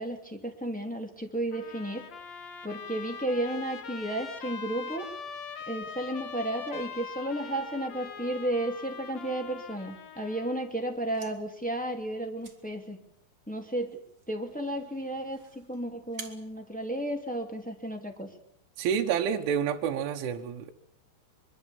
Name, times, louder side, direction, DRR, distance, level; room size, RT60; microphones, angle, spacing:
voice 1, 0.0-2.0 2.6-5.1 5.7-13.0 13.5-14.0 14.3-18.3, right 1 dB, 5° left, 2 dB, 0.9 m, -33 dB
Trumpet, 1.5-10.7, left 6 dB, 50° left, 2.3 m, -42 dB
sound 1, 10.9-17.7, right 4 dB, 65° right, 0.8 m, -52 dB
voice 2, 18.8-20.7, right 8 dB, 90° right, 3 dB, 3.7 m, -28 dB
23.5 x 23.5 x 7.2 m, 0.65 s
omnidirectional pair, 5.3 m